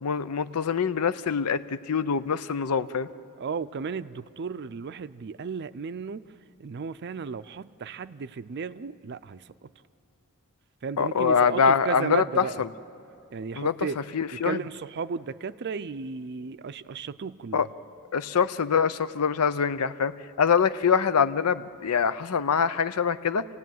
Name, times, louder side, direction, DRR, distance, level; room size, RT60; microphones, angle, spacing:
voice 1, 0.0-3.1 11.0-12.7 13.6-13.7 14.1-14.6 17.5-17.7 18.1-23.5, left 6 dB, 90° left, 13 dB, 0.6 m, -24 dB
voice 2, 3.4-6.2 6.6-9.7 10.8-12.6 13.3-14.0 14.3-17.7, right 5 dB, 50° right, 13 dB, 0.4 m, -34 dB
27.0 x 16.5 x 9.3 m, 2.8 s
head